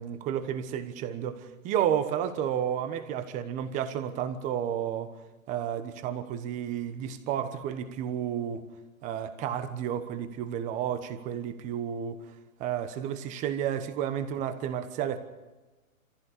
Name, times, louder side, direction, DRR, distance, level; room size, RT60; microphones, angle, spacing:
voice 1, 0.0-5.1 5.5-8.7 9.0-12.2 12.6-15.2, right 9 dB, 15° right, 1.1 m, -31 dB
25.5 x 15.5 x 6.7 m
hypercardioid pair, 155°, 42 cm